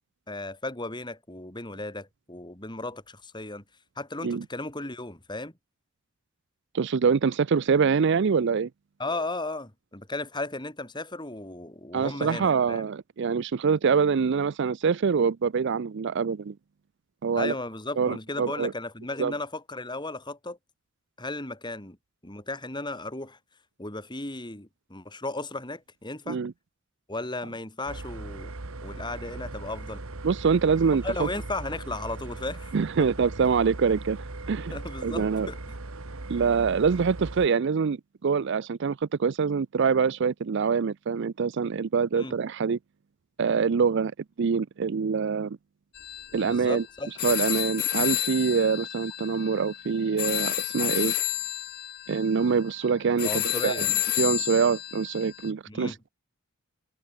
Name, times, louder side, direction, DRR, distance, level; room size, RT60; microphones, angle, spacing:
voice 1, 0.3-3.6 4.0-5.5 9.0-12.8 17.3-20.6 21.2-22.0 22.2-23.4 23.8-26.4 27.1-28.5 28.8-30.0 31.0-32.7 33.0-33.1 34.7-35.6 42.2-42.4 46.4-47.2 53.2-53.9 55.7-56.0, left 2 dB, 20° left, 4.0 m, -35 dB
voice 2, 6.7-8.7 11.9-16.5 17.2-17.5 18.0-18.7 19.2-19.3 26.3-26.5 30.2-31.0 32.7-34.2 34.5-35.5 36.3-42.8 43.4-44.1 44.4-45.6 46.3-46.8 47.2-51.1 52.1-53.9 54.2-56.1, right 5 dB, 55° right, 0.4 m, -25 dB
sound 1, 27.9-37.5, right 2 dB, 75° right, 1.6 m, -39 dB
sound 2, 45.9-55.5, left 14 dB, 45° left, 1.2 m, -31 dB
head